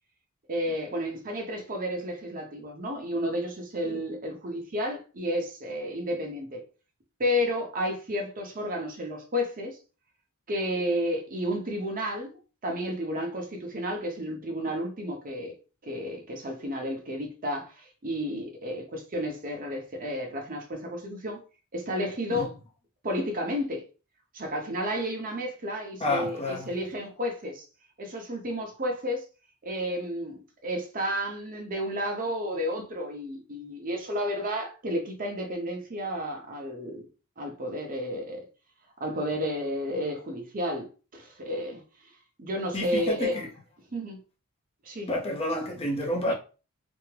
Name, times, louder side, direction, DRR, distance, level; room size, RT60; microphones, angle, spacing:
voice 1, 0.5-6.6 7.2-9.8 10.5-12.3 12.6-15.5 15.8-21.4 21.7-22.5 23.0-23.8 24.3-27.6 28.0-29.2 29.6-37.1 37.4-38.4 39.0-40.9 41.1-41.8 42.4-43.4 43.9-44.2 44.8-45.1 46.2-46.3, equal, 40° right, 0.8 m, -31 dB
voice 2, 26.0-26.7 42.7-43.5 45.1-46.3, left 1 dB, 25° left, 0.6 m, -29 dB
3.4 x 2.0 x 3.2 m
head